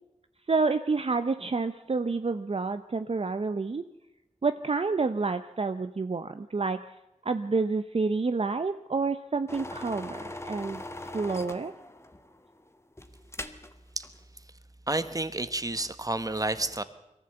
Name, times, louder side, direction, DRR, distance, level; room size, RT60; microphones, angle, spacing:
voice 1, 0.5-3.9 4.4-6.9 7.2-10.8 11.1-11.7, right 4 dB, 45° right, 10 dB, 0.7 m, -29 dB
sound 1, 9.5-13.7 14.0-14.2, left 1 dB, 20° left, 1.5 m, -40 dB
voice 2, 14.9-16.8, right 2 dB, 25° right, 12 dB, 1.3 m, -30 dB
22.5 x 14.5 x 8.0 m, 0.96 s
wide cardioid pair, 70°, 13 cm